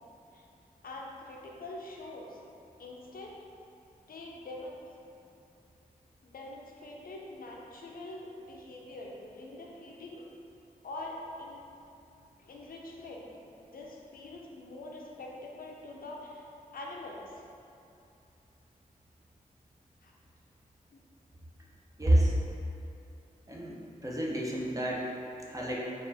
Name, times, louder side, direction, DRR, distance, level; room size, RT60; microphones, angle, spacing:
voice 1, 0.8-2.4 2.8-3.3 4.1-4.8 6.2-10.3 10.8-11.7 12.4-13.3 13.6-16.4 16.7-17.4 20.0-20.1 20.9-21.0, left 2 dB, 80° left, -1 dB, 0.5 m, -44 dB
voice 2, 22.0-22.3 23.5-25.1 25.5-25.8, right 1 dB, 20° right, -4 dB, 0.7 m, -28 dB
4.3 x 2.5 x 4.0 m, 2.6 s
wide cardioid pair, 95°, 15 cm